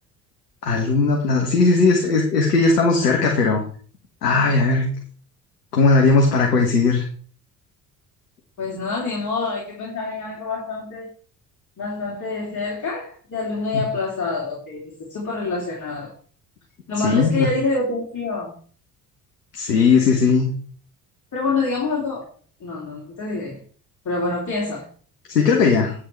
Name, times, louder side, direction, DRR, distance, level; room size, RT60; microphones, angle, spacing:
voice 1, 0.6-3.6 4.2-4.9 5.7-7.0 17.0-17.5 19.5-20.5 25.3-25.9, left 4 dB, 85° left, 1 dB, 1.5 m, -18 dB
voice 2, 8.6-11.1 11.8-16.2 16.9-18.5 21.3-22.3 22.6-23.6 24.1-24.8, left 3 dB, 40° left, -4 dB, 3.5 m, -26 dB
9.2 x 6.7 x 4.6 m, 0.44 s
figure-of-eight pair, 50°, 46 cm